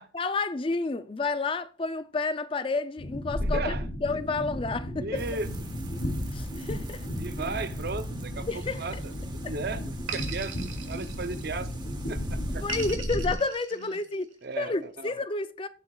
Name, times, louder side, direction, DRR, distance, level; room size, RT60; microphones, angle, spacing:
voice 1, 0.1-3.7 4.0-5.2 6.3-7.1 8.5-9.0 9.4-9.5 12.6-14.3 14.6-15.7, left 3 dB, 25° left, 0.4 m, -30 dB
sound 1, 3.0-13.3, equal, 90° left, 2.8 m, -34 dB
voice 2, 3.4-3.8 5.0-5.5 7.2-11.7 12.1-12.6 13.8-13.9 14.4-15.1, right 3 dB, 55° right, 0.7 m, -36 dB
sound 2, 5.1-13.0, right 1 dB, 20° right, 1.3 m, -42 dB
sound 3, 8.5-9.3 10.1-11.7 12.7-14.3, right 7 dB, 85° right, 2.0 m, -40 dB
16.0 x 7.7 x 2.3 m
head